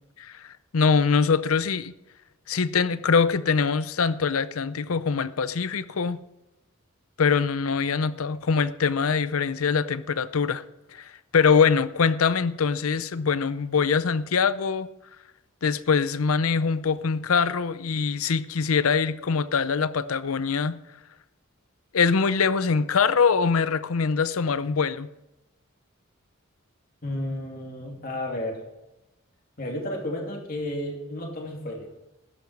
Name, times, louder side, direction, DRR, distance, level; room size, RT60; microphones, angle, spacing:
voice 1, 0.2-1.9 2.5-6.2 7.2-10.6 10.9-14.9 15.6-20.8 21.9-25.1, left 5 dB, 85° left, 15 dB, 0.6 m, -23 dB
voice 2, 27.0-28.6 29.6-31.9, left 1 dB, 45° left, 0 dB, 2.7 m, -32 dB
13.0 x 10.5 x 4.7 m, 0.93 s
head